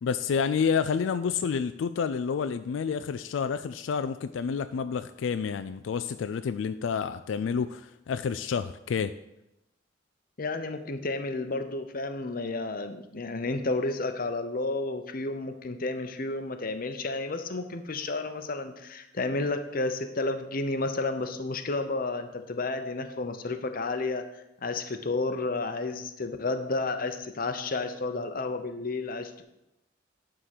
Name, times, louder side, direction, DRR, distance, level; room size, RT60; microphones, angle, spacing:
voice 1, 0.0-9.1, left 6 dB, 90° left, 11 dB, 0.4 m, -29 dB
voice 2, 10.4-24.2 24.6-29.4, left 3 dB, 50° left, 8 dB, 0.8 m, -31 dB
11.0 x 3.8 x 6.6 m, 0.89 s
head